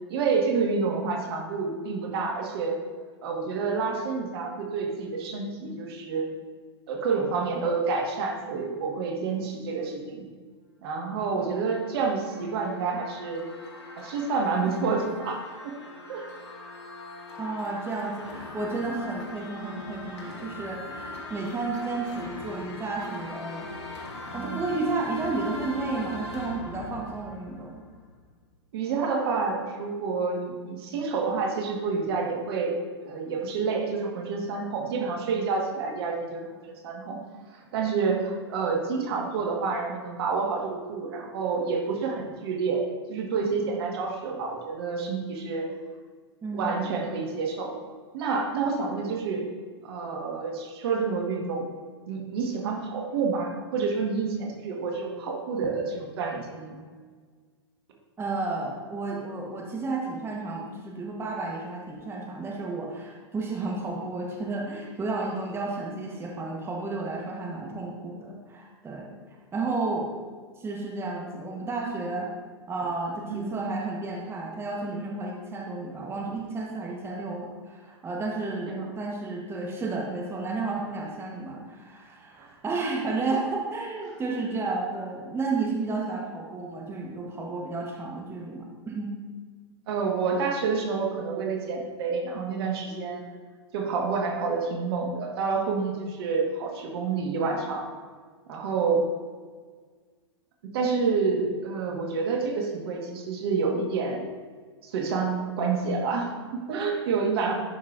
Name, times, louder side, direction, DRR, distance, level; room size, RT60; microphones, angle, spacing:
voice 1, 0.1-2.8 3.2-6.3 6.9-10.2 10.8-13.4 14.0-15.7 16.1-16.3 24.3-24.7 28.7-37.2 37.5-45.7 46.5-47.7 48.1-49.5 49.8-51.7 52.1-56.8 73.3-73.5 78.7-78.9 82.4-82.5 89.9-93.2 93.7-97.9 98.5-99.1 100.7-104.3 104.8-107.5, right 4 dB, 60° right, 1 dB, 1.6 m, -28 dB
sound 1, 11.3-28.3, left 2 dB, 75° left, 1.5 m, -41 dB
voice 2, 17.4-23.7 24.3-27.8 46.4-47.0 58.2-69.1 69.5-70.2 70.6-72.3 72.7-89.2, right 3 dB, 15° right, -1 dB, 1.2 m, -32 dB
11.0 x 5.4 x 2.6 m, 1.5 s
hypercardioid pair, 110°, 15 cm